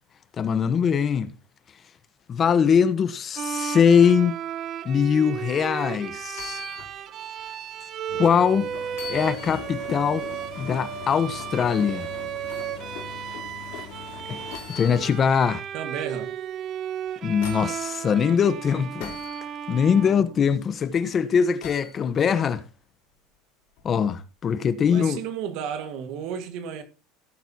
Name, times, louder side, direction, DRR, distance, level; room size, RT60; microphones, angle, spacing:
voice 1, 0.4-1.3 2.3-4.3 4.8-6.6 8.1-8.7 9.1-10.2 10.6-12.1 14.3-14.4 14.7-15.6 17.2-19.1 19.7-22.6 23.8-25.2, left 7 dB, 30° left, 1.0 m, -22 dB
Bowed string instrument, 3.4-20.8, right 9 dB, 40° right, 1.1 m, -34 dB
sound 1, 6.3-7.0 7.4-7.5 8.9-9.9 12.5-12.8 14.5-15.5 16.9-17.8 19.0-19.4 21.6-22.0 23.8-23.9, left 9 dB, 80° left, 4.4 m, -41 dB
sound 2, 8.1-15.1, left 9 dB, 65° left, 3.2 m, -41 dB
voice 2, 15.7-16.4 24.9-26.8, right 8 dB, 60° right, 1.8 m, -33 dB
17.0 x 9.2 x 2.8 m
supercardioid pair, 130°, 0 cm